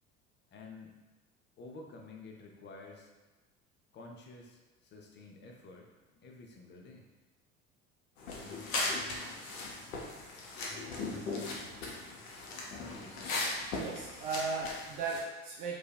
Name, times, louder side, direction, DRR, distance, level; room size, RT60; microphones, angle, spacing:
voice 1, 0.5-0.9 1.6-3.1 3.9-7.1 12.8-13.4, left 3 dB, 30° left, 0 dB, 0.5 m, -51 dB
sound 1, 8.2-15.2, left 3 dB, 80° left, 0.6 m, -38 dB
voice 2, 13.7-15.8, right 4 dB, 50° right, -2 dB, 0.5 m, -36 dB
2.8 x 2.3 x 2.3 m, 1.2 s
hypercardioid pair, 70°, 39 cm